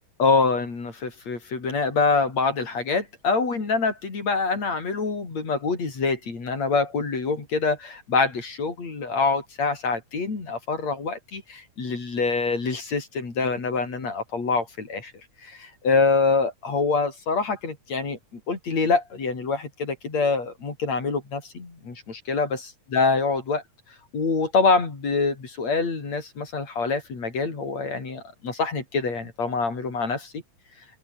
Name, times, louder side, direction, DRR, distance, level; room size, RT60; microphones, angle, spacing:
voice 1, 0.2-15.1 15.4-18.2 18.5-23.6 24.1-30.3, left 4 dB, 55° left, 6.4 m, -25 dB
omnidirectional pair, 3.7 m